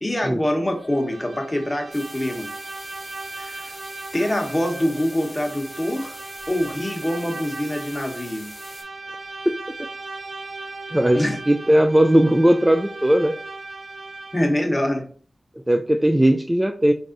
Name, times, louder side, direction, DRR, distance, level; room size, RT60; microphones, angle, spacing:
voice 1, 0.0-2.5 3.4-3.7 4.1-6.2 6.5-8.5 11.1-11.4 14.3-15.1, left 1 dB, 20° left, 2 dB, 1.0 m, -24 dB
Bowed string instrument, 0.8-14.7, right 3 dB, 70° right, 0.6 m, -37 dB
sound 1, 1.9-8.8, left 1 dB, 45° left, 1.3 m, -43 dB
voice 2, 9.5-9.9 10.9-13.4 15.7-16.9, right 1 dB, 10° right, 5 dB, 0.3 m, -18 dB
3.3 x 2.5 x 3.8 m, 0.43 s
cardioid pair, 55°, 0 cm